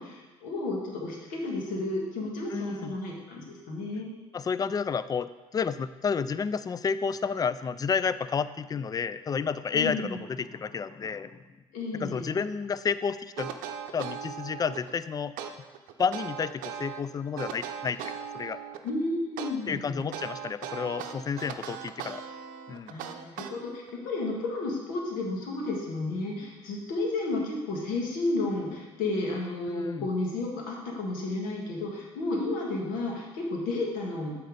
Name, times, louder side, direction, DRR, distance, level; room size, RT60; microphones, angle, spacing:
voice 1, 0.0-4.1 9.7-10.2 11.7-12.3 18.8-20.0 22.9-34.4, left 2 dB, 75° left, -1 dB, 1.8 m, -32 dB
voice 2, 2.5-3.0 4.3-11.4 11.9-13.5 13.9-15.3 16.0-18.6 19.7-22.2 22.7-22.9 29.7-30.1, left 6 dB, 25° left, 15 dB, 0.4 m, -31 dB
sound 1, 13.4-14.9 15.4-17.0 17.4-18.9 19.4-23.9, right 8 dB, 75° right, 0.6 m, -38 dB
7.9 x 4.4 x 5.0 m, 1.2 s
hypercardioid pair, 65°, 14 cm